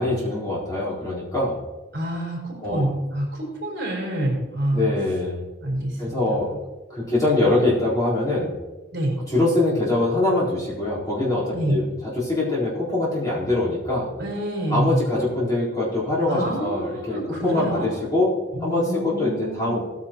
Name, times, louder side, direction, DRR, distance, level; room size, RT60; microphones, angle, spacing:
voice 1, 0.0-1.6 2.6-2.9 4.7-5.4 6.0-6.5 6.9-8.5 9.3-14.1 14.7-18.3 18.6-19.8, left 2 dB, 20° left, -8 dB, 4.0 m, -23 dB
voice 2, 1.9-4.9 5.6-6.4 8.9-9.1 11.5-11.8 14.2-15.0 16.3-17.9 18.5-19.8, right 1 dB, 55° right, -2 dB, 4.6 m, -27 dB
17.0 x 9.7 x 3.0 m, 1.1 s
head